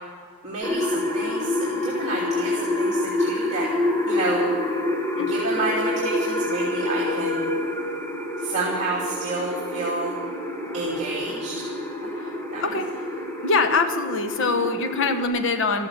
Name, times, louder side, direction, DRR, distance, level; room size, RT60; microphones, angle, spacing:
voice 1, 0.4-3.7 4.1-4.5 5.3-7.4 8.4-10.1 10.7-11.6 12.5-12.6, right 3 dB, 30° right, -5 dB, 2.8 m, -29 dB
sound 1, 0.6-15.2, left 1 dB, 10° left, 1.4 m, -27 dB
voice 2, 13.4-15.9, left 4 dB, 60° left, 8 dB, 1.1 m, -23 dB
14.0 x 14.0 x 7.4 m, 2.1 s
head